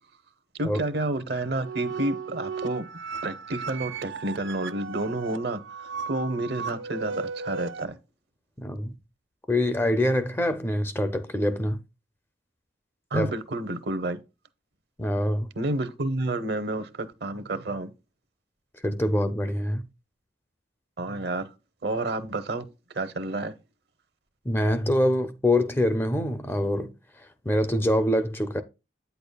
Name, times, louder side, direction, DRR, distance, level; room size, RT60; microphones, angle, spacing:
voice 1, 0.5-2.9 3.2-8.0 13.1-14.2 15.6-17.9 21.0-21.5 21.8-22.6 22.9-23.5, right 2 dB, 60° right, 0.8 m, -30 dB
sound 1, 1.3-7.9, right 5 dB, 80° right, 0.4 m, -36 dB
voice 2, 8.6-8.9 9.5-11.8 13.1-13.3 15.0-15.5 18.8-19.8 24.5-26.9 27.5-28.6, left 1 dB, 10° left, 0.4 m, -25 dB
8.7 x 6.8 x 2.3 m
head